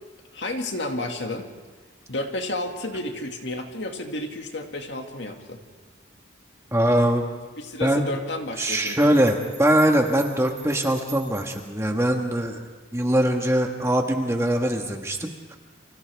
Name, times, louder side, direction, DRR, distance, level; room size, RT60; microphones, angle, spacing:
voice 1, 0.3-1.5 2.1-5.6 7.6-9.1, left 2 dB, 65° left, 3 dB, 2.1 m, -31 dB
voice 2, 6.7-7.2 7.8-8.0 8.6-12.6 12.9-15.6, right 1 dB, 15° right, 3 dB, 1.5 m, -22 dB
sound 1, 8.7-11.9, right 9 dB, 40° right, 3.0 m, -45 dB
30.0 x 25.5 x 3.5 m, 1.3 s
head